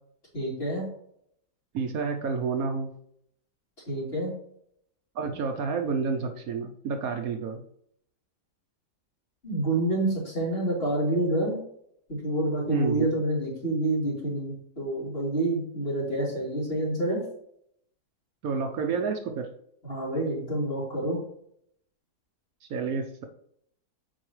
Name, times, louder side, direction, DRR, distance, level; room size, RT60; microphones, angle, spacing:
voice 1, 0.3-0.8 3.9-4.3 9.4-11.6 12.1-17.2 19.8-21.2, right 1 dB, 40° left, -6 dB, 3.3 m, -28 dB
voice 2, 1.7-2.9 5.2-7.6 12.7-13.1 18.4-19.5 22.7-23.2, right 5 dB, 70° right, 5 dB, 1.1 m, -29 dB
8.6 x 4.7 x 3.2 m, 0.70 s
omnidirectional pair, 1.7 m